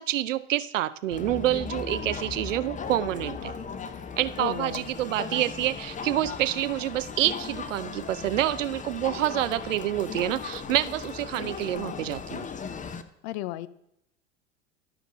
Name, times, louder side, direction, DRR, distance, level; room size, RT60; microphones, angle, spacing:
voice 1, 0.0-3.5 4.2-12.5, right 13 dB, 90° right, 16 dB, 0.5 m, -27 dB
Crowd, 1.1-13.0, left 5 dB, 20° left, 0.7 m, -37 dB
voice 2, 4.4-4.8 13.2-13.7, left 16 dB, 60° left, 17 dB, 0.6 m, -33 dB
13.0 x 5.1 x 5.1 m, 0.80 s
hypercardioid pair, 85°, 37 cm